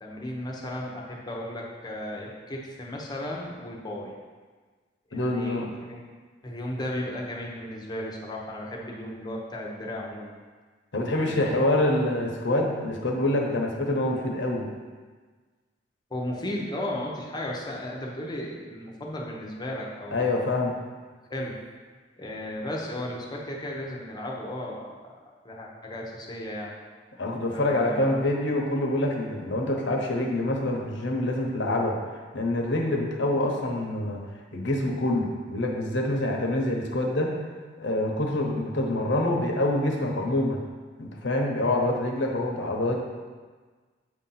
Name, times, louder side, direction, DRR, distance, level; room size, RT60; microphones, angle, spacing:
voice 1, 0.0-4.1 5.1-6.1 6.4-10.3 11.3-11.6 16.1-20.4 21.3-21.6 22.2-26.7 27.5-28.2, left 1 dB, 20° left, -2 dB, 0.9 m, -35 dB
voice 2, 5.1-5.7 10.9-14.7 20.1-20.7 27.2-32.0 32.3-34.2 34.5-37.3 37.8-40.6 41.0-43.0, left 1 dB, 70° left, 0 dB, 1.0 m, -26 dB
8.2 x 2.8 x 5.6 m, 1.4 s
head